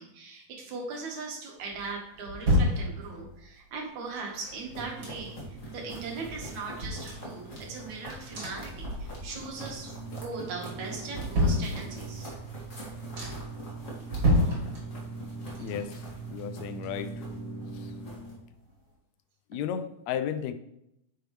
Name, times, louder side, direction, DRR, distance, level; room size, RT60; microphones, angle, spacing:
voice 1, 0.0-5.4 5.7-9.9 10.2-12.3 15.6-15.7, right 4 dB, 70° right, 0 dB, 2.8 m, -39 dB
sound 1, 1.7-3.5 4.2-5.6 5.9-6.0 6.3-7.9 8.3-9.5 9.8-10.3 10.8-12.3 12.7-12.8 13.1-13.6 14.0-15.3 15.5-17.4 17.7-17.8, equal, 40° right, 3.3 m, -30 dB
sound 2, 4.7-18.3, right 2 dB, 30° left, 2.2 m, -41 dB
voice 2, 15.5-16.0 16.3-17.3 17.7-17.9 19.5-20.5, left 8 dB, 75° left, 10 dB, 1.8 m, -34 dB
9.3 x 6.8 x 3.2 m, 0.81 s
omnidirectional pair, 3.5 m